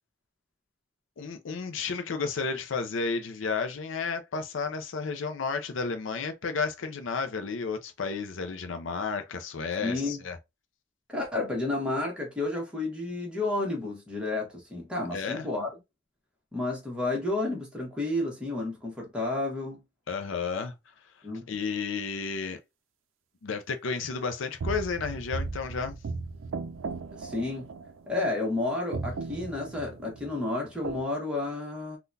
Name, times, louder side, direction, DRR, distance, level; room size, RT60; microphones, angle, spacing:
voice 1, 1.2-10.4 15.1-15.5 20.1-20.7 21.5-22.6 23.4-25.9, left 5 dB, 75° left, 0.5 m, -32 dB
voice 2, 9.8-10.2 11.1-15.7 16.5-19.8 21.2-21.5 27.1-27.7 28.1-32.0, left 2 dB, 5° right, 1.1 m, -31 dB
sound 1, 24.6-28.6 28.9-31.0, right 4 dB, 85° right, 0.4 m, -37 dB
3.7 x 2.3 x 2.6 m
head